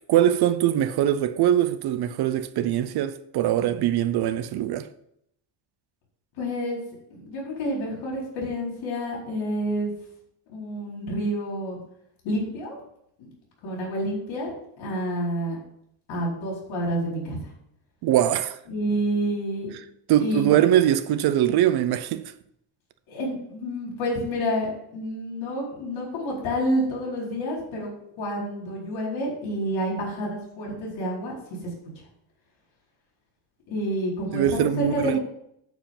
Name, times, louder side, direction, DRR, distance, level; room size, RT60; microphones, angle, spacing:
voice 1, 0.1-4.9 18.0-18.6 20.1-22.3 34.3-35.2, right 11 dB, 55° right, 0.6 m, -22 dB
voice 2, 6.4-6.8 7.1-9.9 10.5-11.8 12.2-12.8 13.2-13.3 13.6-14.5 14.8-15.6 16.1-17.4 18.7-19.7 20.2-20.6 23.1-27.9 28.2-31.3 31.6-31.7 33.7-35.2, equal, 75° left, 4.5 m, -28 dB
8.9 x 4.9 x 7.3 m
cardioid pair, 180°, 47 cm